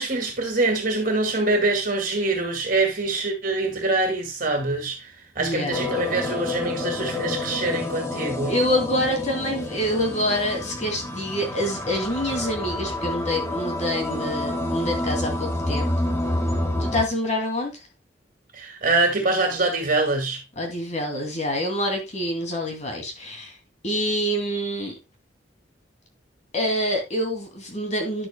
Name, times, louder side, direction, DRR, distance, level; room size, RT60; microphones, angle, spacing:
voice 1, 0.0-8.5 18.5-20.4, right 3 dB, 50° right, 2.1 m, -24 dB
voice 2, 5.4-5.9 8.5-16.1 16.8-17.8 20.6-23.6 23.8-24.9 26.5-28.3, left 1 dB, 40° left, 2.5 m, -26 dB
sound 1, 5.7-17.0, left 1 dB, 15° left, 1.6 m, -28 dB
10.0 x 8.0 x 2.2 m
head